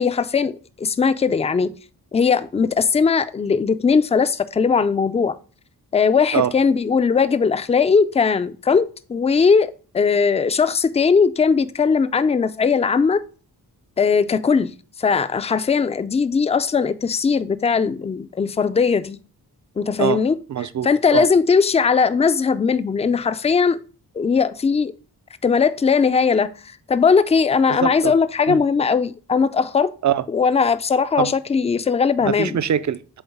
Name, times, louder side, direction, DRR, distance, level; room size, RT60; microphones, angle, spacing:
voice 1, 0.0-1.7 2.1-5.4 5.9-13.2 14.0-14.7 15.0-19.2 19.8-20.4 20.8-23.8 24.2-24.9 25.4-26.5 26.9-29.9 30.3-32.6, left 5 dB, 20° left, 0.4 m, -19 dB
voice 2, 20.5-21.3 27.7-28.1 28.5-28.6 30.0-30.2 31.2-31.3 32.2-33.2, right 9 dB, 50° right, 0.5 m, -23 dB
7.9 x 3.8 x 3.5 m
wide cardioid pair, 95°, 38 cm